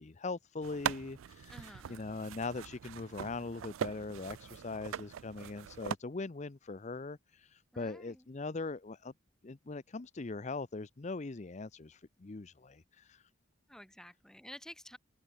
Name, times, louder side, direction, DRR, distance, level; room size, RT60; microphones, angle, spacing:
voice 1, 0.0-9.1 9.4-13.2, left 3 dB, 35° left, 0.6 m, -41 dB
sound 1, 0.6-6.0, right 8 dB, 90° right, 0.4 m, -41 dB
voice 2, 1.5-2.1 7.7-8.3 13.7-15.0, equal, 5° left, 2.4 m, -51 dB
head